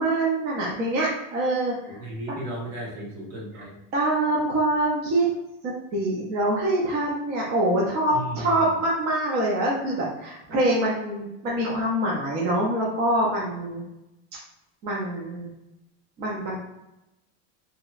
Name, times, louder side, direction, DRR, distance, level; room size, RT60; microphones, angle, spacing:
voice 1, 0.0-2.0 3.9-5.3 5.9-13.8 14.8-15.5 16.2-16.6, right 1 dB, 30° right, -4 dB, 0.5 m, -25 dB
voice 2, 1.9-3.8 8.1-8.7, right 1 dB, 65° right, -3 dB, 1.5 m, -35 dB
3.0 x 2.6 x 2.4 m, 0.92 s
cardioid pair, 170°, 36 cm